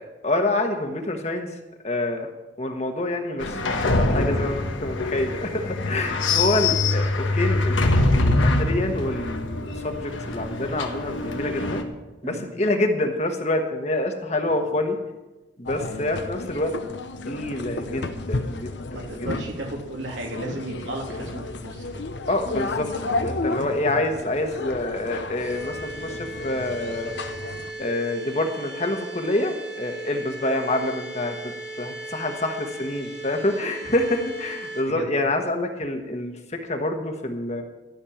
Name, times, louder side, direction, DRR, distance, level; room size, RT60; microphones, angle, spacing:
voice 1, 0.0-1.5 1.8-2.3 2.6-11.8 12.2-15.0 15.6-16.7 17.3-19.3 22.3-22.9 23.2-27.1 27.8-31.4 31.8-37.6, left 1 dB, 35° left, 4 dB, 1.3 m, -27 dB
sound 1, 3.4-11.8, left 2 dB, 85° left, 1.3 m, -24 dB
sound 2, 15.7-27.7, left 2 dB, 70° left, 0.9 m, -32 dB
voice 2, 18.9-22.0 34.9-35.1, right 1 dB, 80° right, -1 dB, 3.1 m, -34 dB
sound 3, 25.4-34.8, right 2 dB, 65° right, 2.9 m, -37 dB
13.0 x 6.5 x 8.6 m, 1.1 s
head